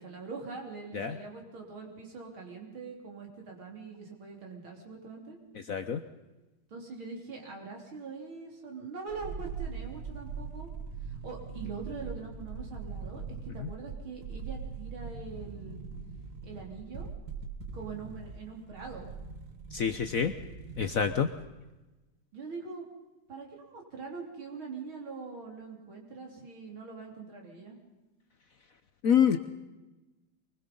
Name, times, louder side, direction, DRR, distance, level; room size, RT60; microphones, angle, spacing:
voice 1, 0.0-5.4 6.7-10.7 11.1-13.2 13.5-15.9 16.4-17.1 17.7-19.1 22.3-22.9 23.3-27.8, right 4 dB, 75° right, 1 dB, 4.3 m, -43 dB
voice 2, 5.7-6.0 13.6-13.7 19.7-20.3 20.8-21.3 29.0-29.4, left 7 dB, 55° left, 8 dB, 1.0 m, -26 dB
sound 1, 9.1-21.5 21.7-21.8, right 5 dB, 50° right, 2.0 m, -41 dB
24.0 x 20.5 x 5.4 m, 1.1 s
omnidirectional pair, 2.2 m